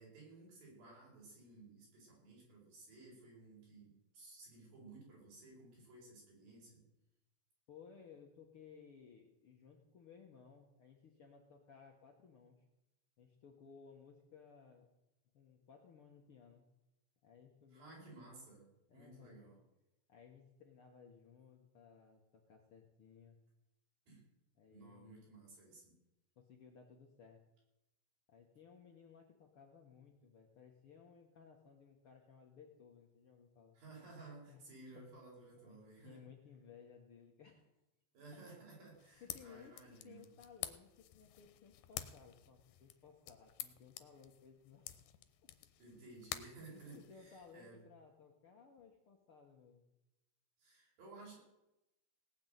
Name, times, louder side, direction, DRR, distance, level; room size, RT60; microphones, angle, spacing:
voice 1, 0.0-6.8 17.7-18.7 18.9-19.6 24.1-24.2 24.7-25.9 33.7-36.3 38.1-40.3 45.8-47.8 50.6-51.4, right 3 dB, 80° right, -3 dB, 6.9 m, -56 dB
voice 2, 7.7-12.6 13.2-14.9 15.3-16.6 17.2-18.2 18.9-19.5 20.1-23.4 24.6-25.3 26.4-27.4 28.3-33.8 34.5-34.6 34.9-35.1 35.6-37.7 39.2-44.9 45.4-45.5 46.7-49.8, left 6 dB, 60° left, 1 dB, 1.5 m, -60 dB
sound 1, 38.9-47.5, left 13 dB, 80° left, 2.6 m, -50 dB
18.0 x 6.1 x 9.1 m, 0.93 s
omnidirectional pair, 4.1 m